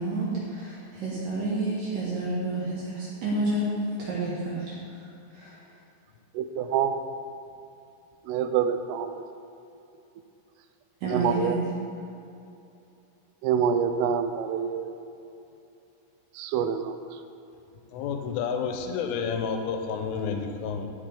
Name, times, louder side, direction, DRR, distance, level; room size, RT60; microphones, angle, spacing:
voice 1, 0.0-4.7 5.3-5.6 11.0-11.6, right 2 dB, 65° right, -7 dB, 2.3 m, -29 dB
voice 2, 6.4-7.0 8.3-9.1 11.1-11.6 13.4-14.9 16.4-16.9, right 8 dB, 90° right, 9 dB, 3.1 m, -26 dB
voice 3, 17.9-20.9, left 6 dB, 90° left, 4 dB, 3.2 m, -30 dB
15.0 x 5.9 x 3.4 m, 2.7 s
omnidirectional pair, 5.6 m